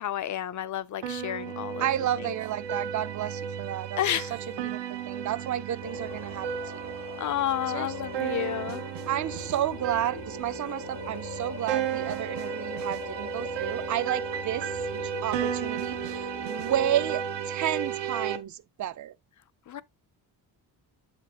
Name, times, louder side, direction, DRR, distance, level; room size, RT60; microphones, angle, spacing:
voice 1, 0.0-1.9 2.2-2.3 4.0-4.3 7.2-8.9 19.7-19.8, left 11 dB, 45° left, 0.4 m, -31 dB
sound 1, 1.0-18.4, right 8 dB, 90° right, 0.8 m, -34 dB
voice 2, 1.8-4.8 5.1-7.0 7.7-8.1 9.1-19.1, right 12 dB, 50° right, 0.4 m, -32 dB
Singing, 5.8-17.0, left 5 dB, 85° left, 2.7 m, -42 dB
7.1 x 5.2 x 2.8 m
cardioid pair, 100°, 41 cm